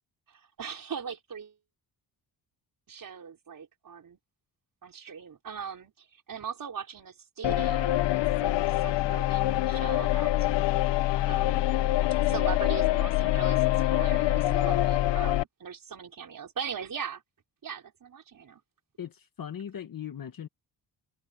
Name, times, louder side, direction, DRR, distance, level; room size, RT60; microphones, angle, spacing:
voice 1, 0.3-1.5 2.9-4.2 4.8-10.5 11.3-11.7 12.2-17.2 17.6-18.6, right 7 dB, 50° right, 4.9 m, -40 dB
sound 1, 7.4-15.4, left 14 dB, 75° left, 0.7 m, -25 dB
voice 2, 19.0-20.5, left 9 dB, 50° left, 1.5 m, -39 dB
cardioid pair, 110°, 43 cm